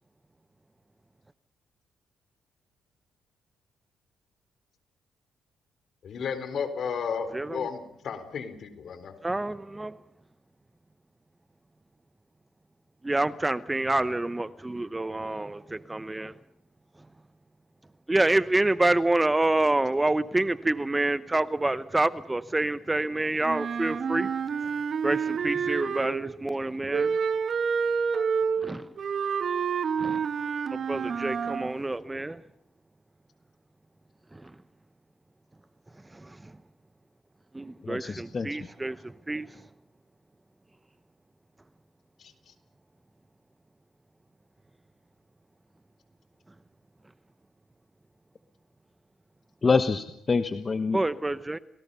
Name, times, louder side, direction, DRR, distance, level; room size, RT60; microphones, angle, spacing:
voice 1, 6.0-9.1 42.2-42.5, left 6 dB, 60° left, 4.0 m, -33 dB
voice 2, 7.3-7.7 9.2-10.0 13.0-16.3 18.1-24.3 25.0-27.2 28.6-28.9 30.0-30.3 30.7-32.4 34.3-34.5 36.1-36.6 37.5-39.6 50.9-51.6, right 2 dB, 15° right, 0.8 m, -27 dB
Wind instrument woodwind instrument, 23.4-26.3 26.9-31.7, right 6 dB, 50° right, 1.4 m, -28 dB
voice 3, 37.8-38.6 49.6-51.0, left 4 dB, 35° left, 1.2 m, -26 dB
30.0 x 19.0 x 5.6 m
cardioid pair, 90°, 0 cm